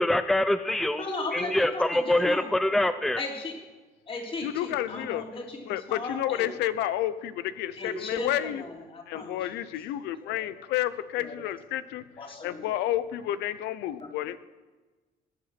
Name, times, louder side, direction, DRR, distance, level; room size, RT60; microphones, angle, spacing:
voice 1, 0.0-1.0 1.3-3.2, left 1 dB, ahead, 11 dB, 0.6 m, -24 dB
voice 2, 1.0-2.5 3.2-3.6 4.1-6.5 7.8-9.5 10.2-10.5 11.2-11.4 12.2-12.8 14.0-14.1, left 2 dB, 35° left, 1 dB, 3.2 m, -36 dB
voice 3, 4.4-5.2 5.7-8.6 9.1-14.4, left 13 dB, 85° left, 15 dB, 0.8 m, -30 dB
19.0 x 9.5 x 6.0 m, 1.3 s
cardioid pair, 110°, 17 cm